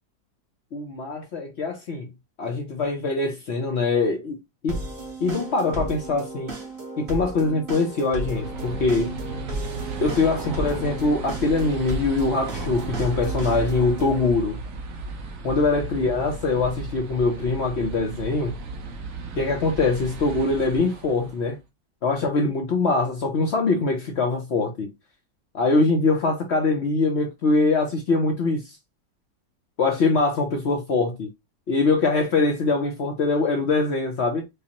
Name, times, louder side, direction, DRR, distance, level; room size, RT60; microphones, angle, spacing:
voice 1, 0.7-2.1 2.4-4.4 4.6-4.8 5.2-6.5 7.0-9.2 10.0-14.6 15.4-18.6 19.4-21.6 22.0-24.9 25.5-28.8 29.8-31.3 31.7-34.4, left 3 dB, 70° left, 0.6 m, -23 dB
sound 1, 4.7-14.3, right 2 dB, 35° right, 1.0 m, -35 dB
sound 2, 8.0-21.5, right 3 dB, 60° right, 0.9 m, -34 dB
5.1 x 2.1 x 2.8 m
omnidirectional pair, 2.0 m